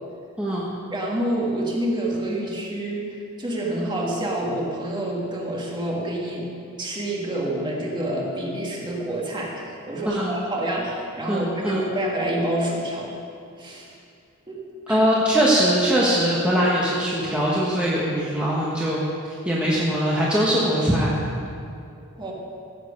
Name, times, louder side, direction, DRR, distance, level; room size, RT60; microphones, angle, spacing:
voice 1, 0.4-0.7 10.0-10.4 11.3-11.8 14.9-19.1 19.4-21.1, equal, 5° right, -7 dB, 1.3 m, -21 dB
voice 2, 0.9-6.5 6.8-13.2 13.6-14.0 14.5-14.6 14.9-15.0 22.2-22.3, right 1 dB, 20° right, -3 dB, 1.9 m, -28 dB
15.5 x 7.6 x 5.3 m, 2.5 s
head